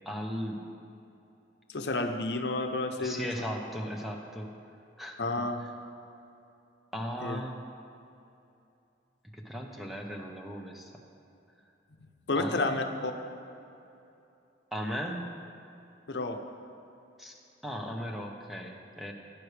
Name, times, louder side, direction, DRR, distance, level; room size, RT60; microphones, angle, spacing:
voice 1, 0.0-0.8 3.0-4.6 5.0-5.5 6.9-7.6 9.3-10.9 12.3-12.9 14.7-15.4 17.2-17.3 17.6-19.1, equal, ahead, 1 dB, 0.8 m, -37 dB
voice 2, 1.7-3.3 5.2-5.6 7.2-7.4 12.3-13.1 16.1-16.4, left 2 dB, 70° left, 5 dB, 0.7 m, -30 dB
17.0 x 9.5 x 3.3 m, 2.7 s
head